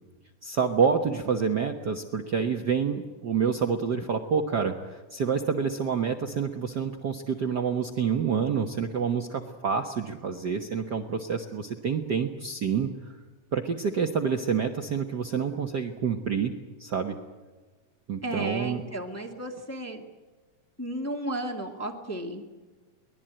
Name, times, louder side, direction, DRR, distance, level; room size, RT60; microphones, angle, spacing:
voice 1, 0.4-12.9 13.5-16.5 16.8-17.2 18.1-18.8, right 6 dB, 75° right, 4 dB, 0.9 m, -28 dB
voice 2, 18.2-20.0 20.8-22.4, right 1 dB, 5° left, 2 dB, 1.3 m, -33 dB
23.0 x 20.0 x 9.0 m, 1.3 s
omnidirectional pair, 3.8 m